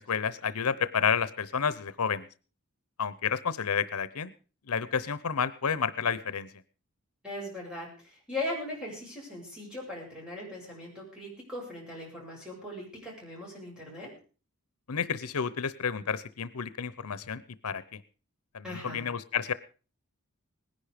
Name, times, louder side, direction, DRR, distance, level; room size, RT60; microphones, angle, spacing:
voice 1, 0.0-2.3 3.0-4.3 4.7-6.5 14.9-18.0 18.5-19.5, left 6 dB, 85° left, 16 dB, 0.8 m, -30 dB
voice 2, 7.2-7.9 8.3-14.1 18.6-19.0, left 1 dB, 5° right, -3 dB, 7.4 m, -39 dB
19.0 x 11.0 x 5.1 m, 0.38 s
head